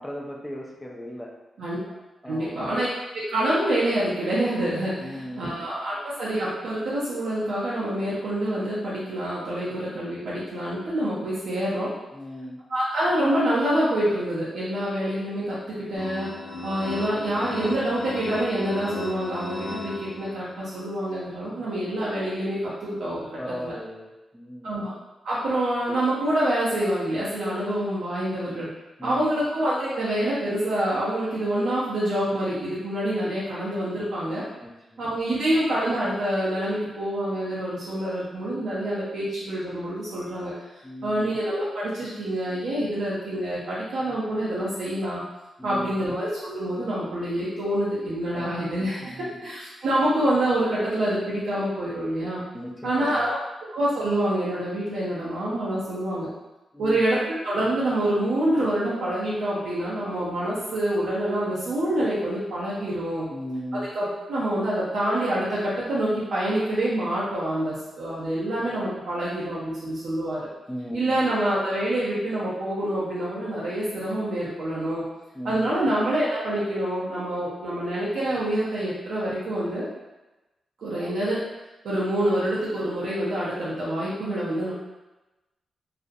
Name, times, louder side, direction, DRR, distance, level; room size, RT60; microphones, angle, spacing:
voice 1, 0.0-1.3 2.2-2.7 5.0-5.6 12.1-12.6 23.4-24.8 29.0-29.4 34.6-35.2 40.8-41.3 45.6-46.0 48.3-48.5 49.0-49.4 52.5-53.2 56.7-57.0 63.3-63.9 70.7-71.2 75.3-75.8, equal, 5° left, -2 dB, 0.4 m, -37 dB
voice 2, 2.2-2.9 3.1-11.9 12.7-16.3 16.6-23.3 23.6-23.7 24.6-24.9 25.2-28.7 29.0-34.5 35.0-40.5 41.0-45.2 45.6-52.4 52.8-53.4 53.7-56.3 56.8-63.3 63.8-70.5 70.9-75.0 75.4-79.9 80.8-81.4 81.8-84.7, right 1 dB, 80° right, -9 dB, 0.5 m, -26 dB
sound 1, 16.0-20.7, left 2 dB, 60° left, 0.5 m, -35 dB
2.4 x 2.0 x 2.5 m, 1.1 s
cardioid pair, 90°, 0 cm